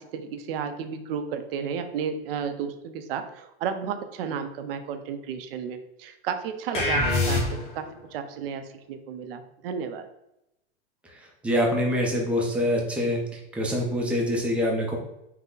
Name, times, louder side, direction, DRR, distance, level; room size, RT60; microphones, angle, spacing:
voice 1, 0.1-7.4 7.8-10.1, right 7 dB, 55° right, 8 dB, 0.6 m, -33 dB
sound 1, 6.7-7.9, left 2 dB, 20° left, 0.9 m, -24 dB
voice 2, 11.4-13.2 13.5-15.0, equal, 5° right, -1 dB, 0.5 m, -25 dB
5.6 x 2.1 x 3.8 m, 0.86 s
supercardioid pair, 150°, 33 cm